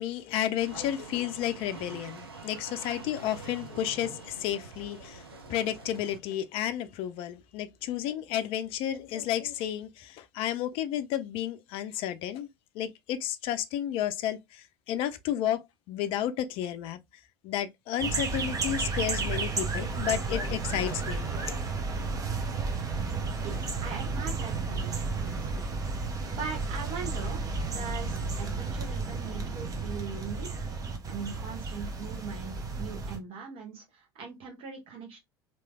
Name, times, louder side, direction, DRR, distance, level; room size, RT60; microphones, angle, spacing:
voice 1, 0.0-12.5 12.7-17.0 17.4-21.7, left 11 dB, 50° left, 0.5 m, -32 dB
sound 1, 0.6-6.2, right 5 dB, 80° right, 0.5 m, -46 dB
sound 2, 18.0-33.2, right 4 dB, 30° right, 0.9 m, -32 dB
voice 2, 23.4-25.6 26.3-30.5 31.1-35.2, right 5 dB, 50° right, 1.4 m, -41 dB
3.1 x 2.9 x 2.2 m
figure-of-eight pair, 70°, 12 cm